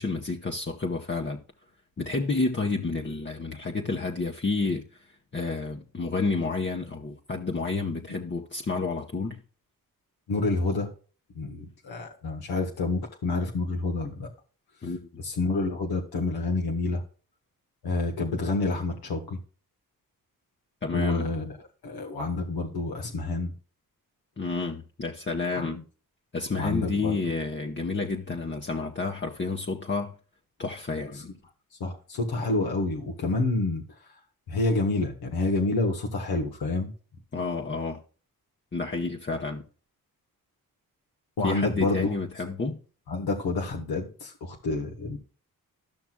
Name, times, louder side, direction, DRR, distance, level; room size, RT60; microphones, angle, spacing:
voice 1, 0.0-1.4 2.0-5.1 5.3-9.4 14.8-15.1 20.8-21.3 24.4-25.8 26.3-30.1 30.6-31.3 37.3-38.0 38.7-39.7 41.4-42.8, left 3 dB, 30° left, 1.0 m, -30 dB
voice 2, 10.3-10.9 11.3-14.3 14.8-14.9 15.2-17.0 17.8-19.4 20.9-23.5 25.5-25.7 26.5-27.3 31.7-34.2 34.5-36.9 41.4-42.1 43.1-45.2, left 3 dB, 90° left, 1.4 m, -28 dB
13.0 x 5.9 x 2.3 m
cardioid pair, 70°, 36 cm